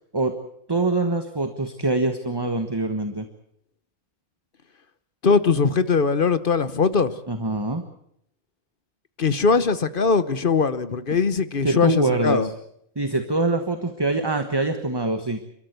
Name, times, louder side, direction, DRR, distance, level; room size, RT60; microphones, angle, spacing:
voice 1, 0.7-3.3 7.3-7.8 11.6-12.4 12.9-15.4, right 2 dB, 20° right, 1.3 m, -24 dB
voice 2, 5.2-7.2 9.2-12.5, left 5 dB, 45° left, 1.1 m, -21 dB
30.0 x 13.5 x 8.1 m
omnidirectional pair, 1.4 m